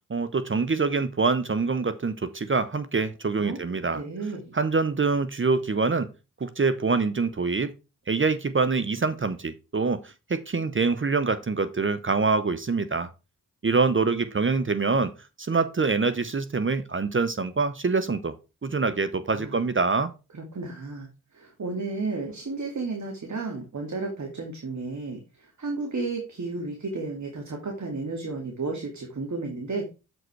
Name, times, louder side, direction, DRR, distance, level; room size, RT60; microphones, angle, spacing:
voice 1, 0.1-4.0 4.5-6.1 6.4-7.7 8.1-13.1 13.6-15.1 15.4-18.3 18.6-20.1, right 4 dB, 35° right, 0.9 m, -25 dB
voice 2, 3.9-4.6 19.3-19.6 20.3-29.9, right 3 dB, 50° right, 2.2 m, -33 dB
7.7 x 5.2 x 4.6 m
cardioid pair, 45°, 36 cm